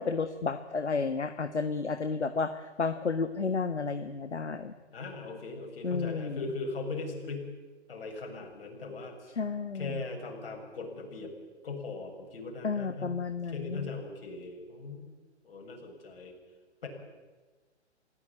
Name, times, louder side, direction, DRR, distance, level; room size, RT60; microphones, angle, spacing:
voice 1, 0.0-4.7 5.8-6.4 9.4-10.0 12.6-13.9, left 4 dB, 75° left, 10 dB, 1.5 m, -32 dB
voice 2, 4.9-7.5 7.9-9.2 9.7-11.3 11.6-13.1 13.5-15.1 15.4-16.3 16.8-16.9, left 3 dB, 55° left, 2 dB, 7.1 m, -39 dB
27.5 x 16.5 x 8.9 m, 1.3 s
figure-of-eight pair, 130°, 35 cm